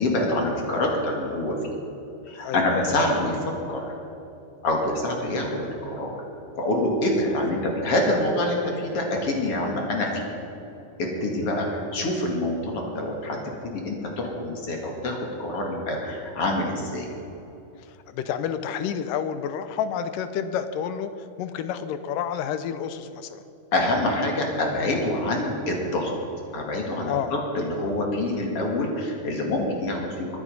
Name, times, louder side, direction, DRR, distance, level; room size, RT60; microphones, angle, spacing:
voice 1, 0.0-1.8 2.3-3.8 4.6-6.2 6.6-10.3 11.0-13.4 13.6-17.1 23.7-26.1 26.5-30.4, left 1 dB, 45° left, 0 dB, 2.8 m, -26 dB
voice 2, 2.4-2.7 11.4-11.5 17.8-23.4 27.0-27.3 27.8-27.9, left 8 dB, 90° left, 11 dB, 2.4 m, -30 dB
22.0 x 10.0 x 5.4 m, 2.9 s
omnidirectional pair, 3.9 m